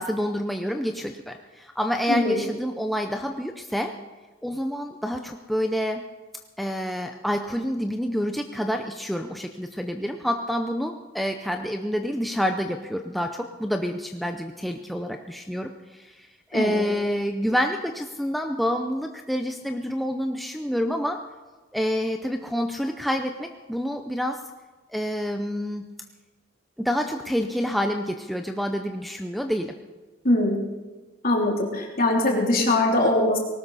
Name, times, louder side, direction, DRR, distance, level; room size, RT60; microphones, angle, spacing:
voice 1, 0.0-3.9 4.4-6.0 6.6-21.2 21.7-24.4 24.9-25.9 26.8-29.7, equal, ahead, 4 dB, 0.6 m, -28 dB
voice 2, 16.5-16.8 30.2-30.6 31.2-33.4, left 1 dB, 50° left, -1 dB, 3.3 m, -22 dB
19.5 x 18.0 x 4.1 m, 1.3 s
head